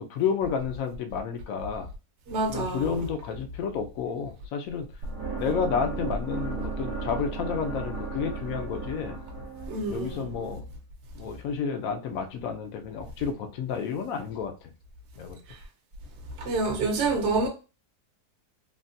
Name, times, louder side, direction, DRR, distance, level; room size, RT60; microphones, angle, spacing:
voice 1, 0.1-1.9 2.5-4.9 5.4-9.2 9.9-10.6 11.2-14.5 15.2-15.4, left 6 dB, 70° left, 0.9 m, -31 dB
voice 2, 2.3-3.1 9.7-10.6 16.4-17.5, right 3 dB, 55° right, 0.9 m, -28 dB
sound 1, 5.0-11.1, right 3 dB, 75° right, 1.1 m, -35 dB
3.5 x 2.3 x 2.6 m
omnidirectional pair, 1.7 m